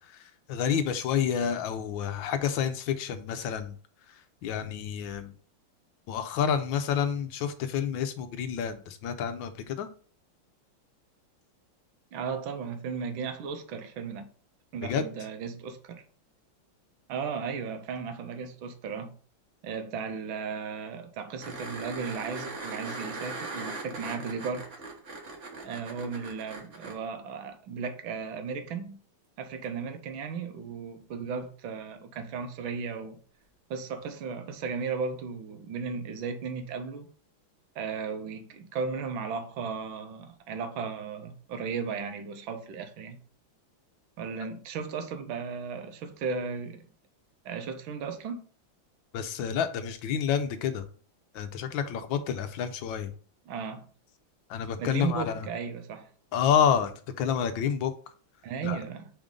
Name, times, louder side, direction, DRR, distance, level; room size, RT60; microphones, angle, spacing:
voice 1, 0.0-3.8 4.4-5.3 6.1-9.9 14.8-15.0 49.1-50.8 51.3-53.1 54.5-55.5 56.3-57.9 58.6-58.8, left 8 dB, 80° left, 1.4 m, -29 dB
voice 2, 12.1-14.3 14.7-16.0 17.1-19.1 19.6-24.7 25.6-29.0 29.4-33.2 33.7-37.1 37.7-43.2 44.2-46.8 47.4-48.4 53.5-53.9 54.8-56.1 58.4-59.1, right 5 dB, 80° right, 1.5 m, -35 dB
sound 1, 21.4-26.9 29.6-29.7, right 3 dB, 40° right, 1.4 m, -39 dB
5.2 x 5.1 x 3.7 m
omnidirectional pair, 2.2 m